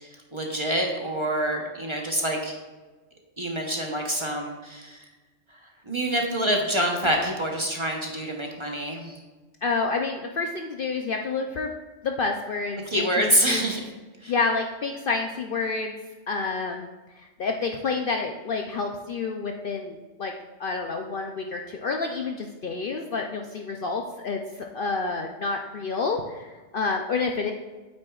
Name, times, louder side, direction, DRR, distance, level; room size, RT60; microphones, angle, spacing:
voice 1, 0.3-2.5 3.4-5.0 5.9-9.2 12.9-13.8 14.2-14.3, right 1 dB, 25° right, 1 dB, 0.9 m, -26 dB
voice 2, 9.6-11.7 12.0-13.6 14.3-16.0 16.3-16.9 17.1-20.3 20.6-24.4 24.7-27.5, left 4 dB, 55° left, 3 dB, 0.6 m, -29 dB
8.7 x 8.6 x 2.4 m, 1.3 s
omnidirectional pair, 1.3 m